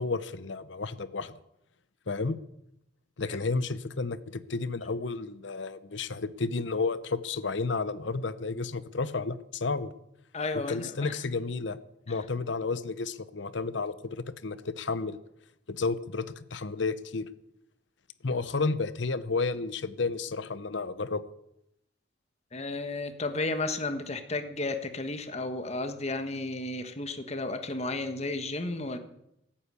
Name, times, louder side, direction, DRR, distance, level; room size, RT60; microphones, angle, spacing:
voice 1, 0.0-1.4 2.1-2.4 3.2-9.9 10.7-11.8 12.1-15.2 15.7-17.3 18.2-21.2, left 4 dB, 75° left, 14 dB, 0.8 m, -32 dB
voice 2, 10.3-11.2 22.5-29.0, left 2 dB, 35° left, 8 dB, 1.4 m, -33 dB
14.5 x 8.8 x 8.3 m, 0.81 s
head